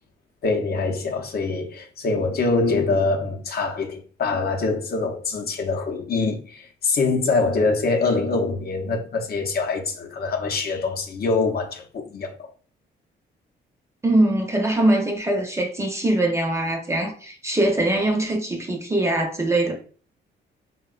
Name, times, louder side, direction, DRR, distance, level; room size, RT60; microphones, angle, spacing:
voice 1, 0.4-12.5, left 3 dB, 50° left, 0.6 m, -24 dB
voice 2, 14.0-19.8, right 1 dB, 15° right, 0.6 m, -22 dB
3.5 x 2.2 x 2.4 m
cardioid pair, 90°, 20 cm